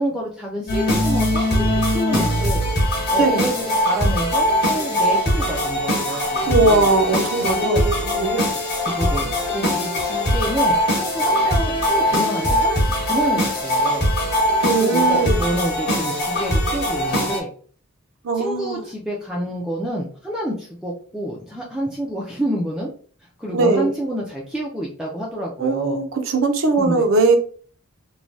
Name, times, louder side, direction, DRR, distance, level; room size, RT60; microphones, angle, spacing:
voice 1, 0.0-6.9 7.4-7.8 8.9-14.1 14.8-17.5 18.3-22.9 23.4-26.0 26.8-27.0, right 1 dB, 5° right, -4 dB, 0.4 m, -28 dB
sound 1, 0.7-17.4, equal, 50° left, 1.0 m, -21 dB
voice 2, 6.1-8.5 14.6-15.4 18.2-18.9 23.5-23.9 25.6-27.4, right 3 dB, 70° right, 6 dB, 0.5 m, -20 dB
3.1 x 2.2 x 2.5 m, 0.44 s
head